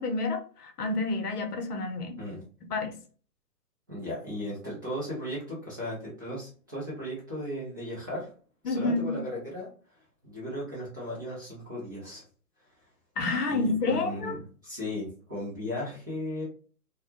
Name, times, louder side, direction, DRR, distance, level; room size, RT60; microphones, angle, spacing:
voice 1, 0.0-2.2 2.7-2.9 8.6-9.2 13.2-14.4, left 3 dB, 70° left, 4 dB, 0.8 m, -29 dB
voice 2, 3.9-8.3 8.6-9.7 10.2-12.2 13.5-16.4, left 1 dB, 15° right, -9 dB, 0.4 m, -36 dB
2.2 x 2.1 x 2.7 m, 0.40 s
figure-of-eight pair, 130°, 48 cm